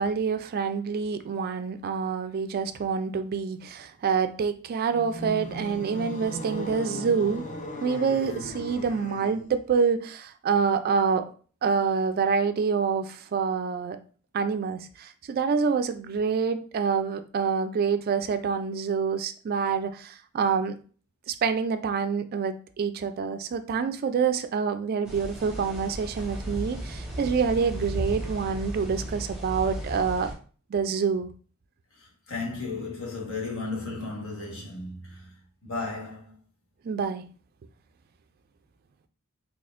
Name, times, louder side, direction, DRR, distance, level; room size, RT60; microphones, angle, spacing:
voice 1, 0.0-7.4 7.8-11.3 11.6-14.0 14.3-20.8 21.3-30.3 30.7-31.3 36.8-37.2, right 6 dB, 45° right, 0.3 m, -27 dB
sound 1, 4.9-9.6, equal, 35° left, 0.5 m, -37 dB
sound 2, 25.0-30.3, right 1 dB, 5° right, 1.1 m, -35 dB
voice 2, 32.0-35.3 35.6-36.3, left 3 dB, 65° left, 1.3 m, -34 dB
4.2 x 2.8 x 2.4 m
head